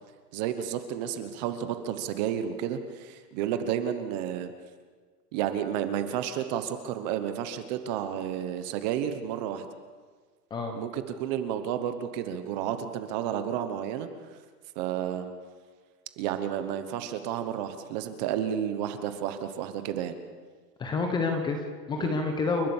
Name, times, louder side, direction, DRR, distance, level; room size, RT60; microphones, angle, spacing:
voice 1, 0.3-4.5 5.3-9.7 10.7-14.1 14.8-15.3 16.2-20.2 22.0-22.2, right 9 dB, 25° right, 9 dB, 1.0 m, -31 dB
voice 2, 20.8-22.7, left 4 dB, 10° left, 4 dB, 0.9 m, -28 dB
29.5 x 12.0 x 7.3 m, 1.5 s
supercardioid pair, 170°, 48 cm